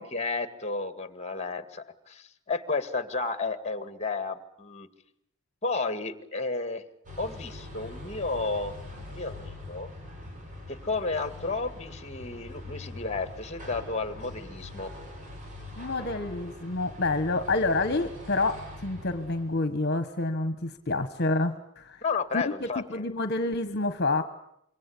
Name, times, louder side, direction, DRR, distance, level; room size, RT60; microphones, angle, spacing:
voice 1, 0.0-4.9 5.6-6.8 7.2-9.9 10.7-14.9 22.0-23.0, left 3 dB, 30° left, 11 dB, 2.0 m, -32 dB
sound 1, 7.0-19.6, left 1 dB, 35° right, 7.0 m, -43 dB
voice 2, 15.7-22.0 22.3-24.2, left 2 dB, 50° left, 10 dB, 1.5 m, -28 dB
26.5 x 23.5 x 8.6 m, 0.74 s
head